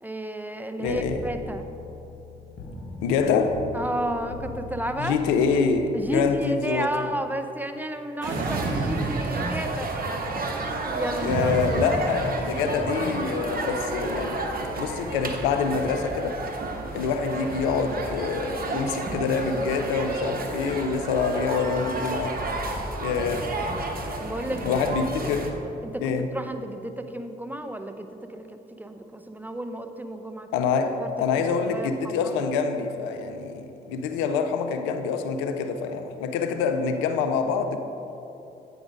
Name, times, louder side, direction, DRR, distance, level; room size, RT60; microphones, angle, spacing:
voice 1, 0.0-1.7 3.7-5.2 5.9-9.9 11.0-12.0 24.2-24.8 25.8-28.4 28.7-30.5 31.0-31.1 31.3-32.3, right 1 dB, 10° right, 8 dB, 0.7 m, -32 dB
voice 2, 0.8-1.3 3.0-3.6 5.0-6.9 11.2-14.5 14.7-16.4 16.9-22.4 23.0-23.5 24.6-25.5 26.0-26.3 30.5-37.8, left 5 dB, 85° left, 7 dB, 0.5 m, -26 dB
sound 1, 0.9-6.4, left 2 dB, 70° left, 1.2 m, -41 dB
sound 2, 8.2-25.5, right 2 dB, 45° right, 1.1 m, -31 dB
sound 3, 8.2-10.1 11.2-13.0, right 2 dB, 65° right, 0.9 m, -31 dB
8.6 x 5.2 x 5.0 m, 2.9 s
hypercardioid pair, 45°, 20 cm